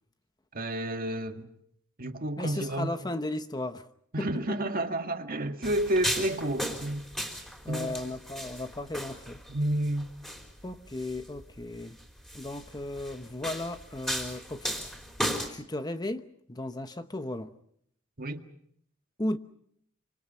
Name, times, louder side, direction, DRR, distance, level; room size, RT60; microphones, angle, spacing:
voice 1, 0.5-1.5 2.0-2.9 4.1-7.1 7.7-8.0 9.5-10.1 18.2-18.4, right 1 dB, 45° right, 1.9 m, -30 dB
voice 2, 2.4-3.9 4.2-4.6 7.6-9.4 10.6-12.0 12.3-14.8 15.5-17.5 19.2-19.4, left 1 dB, 20° left, 0.9 m, -35 dB
sound 1, 5.6-15.5, equal, 5° left, 4.0 m, -36 dB
27.5 x 25.5 x 5.5 m
head